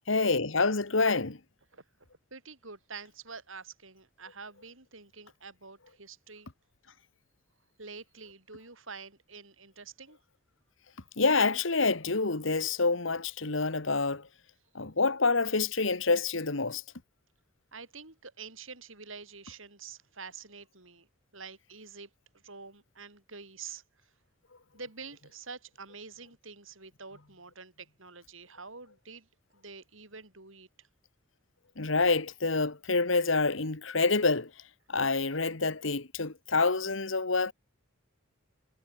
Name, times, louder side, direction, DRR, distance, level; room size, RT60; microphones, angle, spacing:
voice 1, 0.1-1.4 11.2-14.3 14.7-16.8 31.8-34.5 34.9-37.5, left 3 dB, 70° left, 1.7 m, -27 dB
voice 2, 2.3-6.5 7.8-10.2 17.7-21.1 21.3-22.1 22.4-23.8 24.7-29.3 29.5-30.9, right 5 dB, 75° right, 7.2 m, -47 dB
head